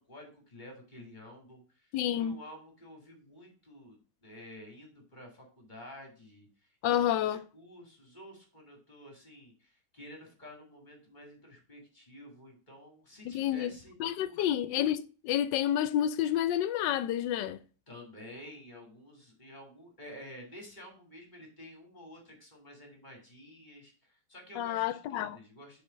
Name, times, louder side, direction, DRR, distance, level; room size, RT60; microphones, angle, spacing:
voice 1, 0.0-14.5 17.9-25.8, left 1 dB, 25° left, 2.5 m, -51 dB
voice 2, 1.9-2.4 6.8-7.4 13.3-13.7 14.0-17.6 24.6-25.4, left 11 dB, 85° left, 1.3 m, -29 dB
6.9 x 4.0 x 4.9 m
omnidirectional pair, 1.9 m